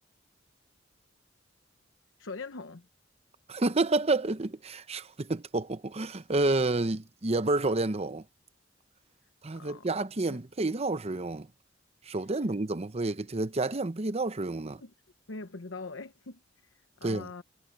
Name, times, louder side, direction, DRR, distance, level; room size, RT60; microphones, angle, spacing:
voice 1, 2.2-2.9 9.5-9.9 10.3-10.4 12.1-12.3 14.8-14.9 15.3-17.4, left 3 dB, 80° left, 1.0 m, -43 dB
voice 2, 3.5-8.2 9.4-11.5 12.1-14.8 17.0-17.3, right 2 dB, 35° right, 0.8 m, -29 dB
head